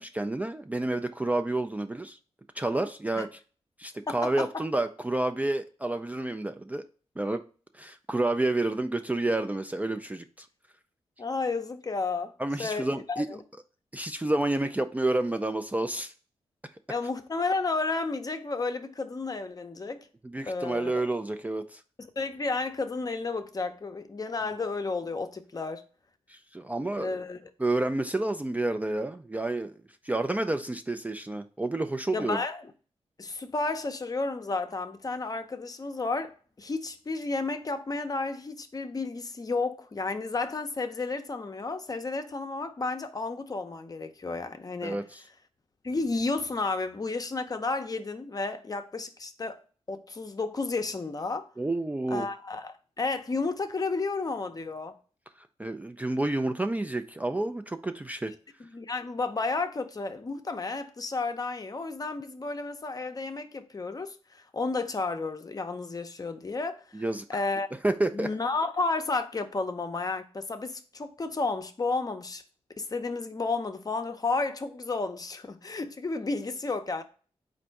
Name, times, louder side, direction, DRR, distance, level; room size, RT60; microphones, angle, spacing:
voice 1, 0.0-2.2 2.6-3.4 3.8-6.8 7.2-7.4 7.7-10.5 12.4-13.3 13.9-16.1 20.3-21.8 26.3-27.1 27.6-29.7 30.0-32.4 44.8-45.2 51.6-52.3 55.6-58.3 66.9-67.2 67.8-68.3, right 2 dB, 15° right, 0.3 m, -29 dB
voice 2, 4.1-4.5 11.2-12.3 12.6-13.4 16.9-20.0 20.5-21.0 22.0-25.8 26.9-27.4 32.1-32.7 33.2-45.0 45.8-49.6 49.9-51.5 52.1-54.9 58.7-67.0 67.3-67.7 68.1-72.4 72.8-77.0, left 3 dB, 35° left, 0.6 m, -32 dB
4.2 x 2.6 x 4.5 m
cardioid pair, 65°, 11 cm